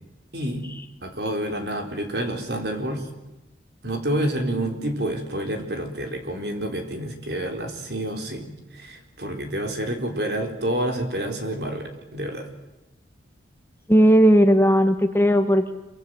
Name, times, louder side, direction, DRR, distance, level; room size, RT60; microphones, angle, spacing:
voice 1, 0.3-0.7 1.0-3.0 3.8-12.5, right 1 dB, 60° right, 4 dB, 4.2 m, -28 dB
voice 2, 13.9-15.7, equal, 10° left, 7 dB, 1.4 m, -17 dB
27.0 x 24.5 x 7.7 m, 0.97 s
head